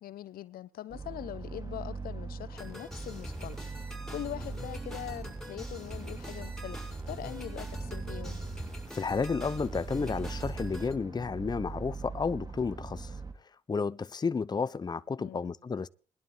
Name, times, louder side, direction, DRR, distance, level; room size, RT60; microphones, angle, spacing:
voice 1, 0.0-3.6 4.1-8.4 15.2-15.5, left 13 dB, 75° left, 0.9 m, -42 dB
sound 1, 0.9-13.3, right 4 dB, 25° right, 2.6 m, -41 dB
sound 2, 2.6-10.9, equal, 5° left, 5.6 m, -43 dB
voice 2, 8.9-15.9, left 5 dB, 25° left, 0.6 m, -32 dB
21.0 x 11.0 x 3.4 m
supercardioid pair, 60°, 15 cm